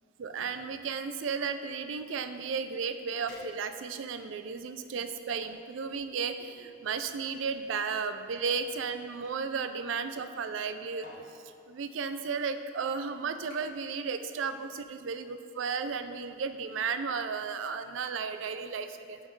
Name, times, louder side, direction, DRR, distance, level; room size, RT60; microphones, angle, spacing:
voice 1, 0.2-11.1 11.7-19.2, right 5 dB, 85° right, 10 dB, 0.4 m, -34 dB
sound 1, 3.3-4.0 4.7-5.5 6.5-9.4 10.5-10.7 11.0-11.3 12.2-12.4 12.8-13.1 13.5-13.9 14.2-14.6 14.9-15.0, equal, 45° left, 1.8 m, -53 dB
11.0 x 4.3 x 3.2 m, 2.2 s
head